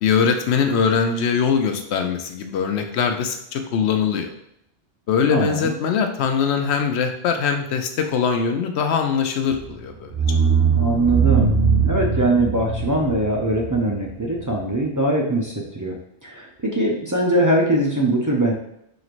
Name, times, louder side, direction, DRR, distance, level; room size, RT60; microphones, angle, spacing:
voice 1, 0.0-4.3 5.1-10.1, left 6 dB, 80° left, 5 dB, 0.8 m, -22 dB
voice 2, 5.3-5.7 10.7-11.5 11.8-15.9 16.2-18.5, right 1 dB, 25° right, -3 dB, 0.4 m, -21 dB
sound 1, 9.6-9.7 10.1-14.7, right 5 dB, 85° right, 2.1 m, -21 dB
4.8 x 3.0 x 2.5 m, 0.76 s
omnidirectional pair, 1.1 m